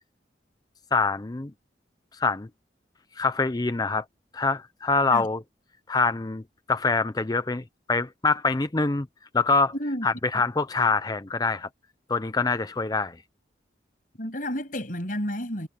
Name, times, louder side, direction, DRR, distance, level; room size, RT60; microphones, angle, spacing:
voice 1, 0.9-1.5 2.2-2.5 3.2-4.0 4.3-5.4 5.9-6.4 6.7-9.1 9.3-9.7 10.0-11.7 12.1-13.2, left 3 dB, 20° left, 0.5 m, -25 dB
voice 2, 9.7-10.1 14.2-15.7, equal, 50° left, 7.3 m, -31 dB
head